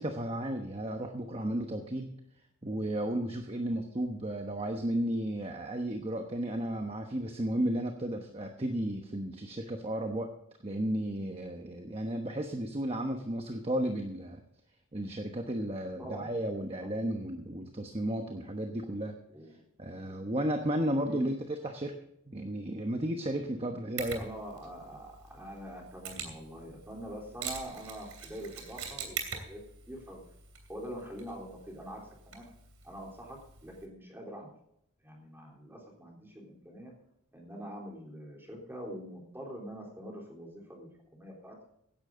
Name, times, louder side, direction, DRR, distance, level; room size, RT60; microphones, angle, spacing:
voice 1, 0.0-2.1 2.6-10.3 10.6-14.4 14.9-19.2 19.8-22.0 22.3-24.2, right 1 dB, 25° right, 4 dB, 1.1 m, -33 dB
voice 2, 19.3-19.6 20.1-20.2 21.0-21.3 24.2-29.6 29.9-30.2 30.7-32.5 32.8-34.5 35.0-36.9 37.3-41.6, equal, 10° right, -2 dB, 3.6 m, -44 dB
Mechanisms, 24.0-33.8, right 6 dB, 80° right, 2.9 m, -44 dB
16.0 x 11.0 x 3.8 m, 0.73 s
head